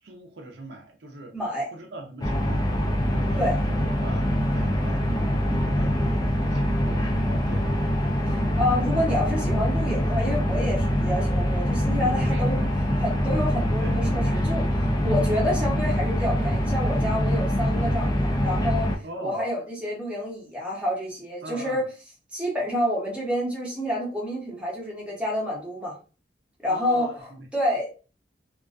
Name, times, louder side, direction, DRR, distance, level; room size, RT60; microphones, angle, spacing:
voice 1, 0.0-1.4 1.7-2.7 3.1-8.1 12.2-12.6 13.8-14.3 17.6-18.0 19.0-19.4 21.4-21.9 26.7-27.5, right 1 dB, 60° right, 0.5 m, -42 dB
voice 2, 1.3-1.7 3.4-3.6 8.3-12.6 13.0-14.7 15.0-18.9 19.2-21.8 22.3-25.9 26.6-27.9, left 1 dB, 5° right, 0.7 m, -28 dB
sound 1, 2.2-19.0, equal, 20° left, 0.3 m, -24 dB
2.4 x 2.2 x 2.4 m
head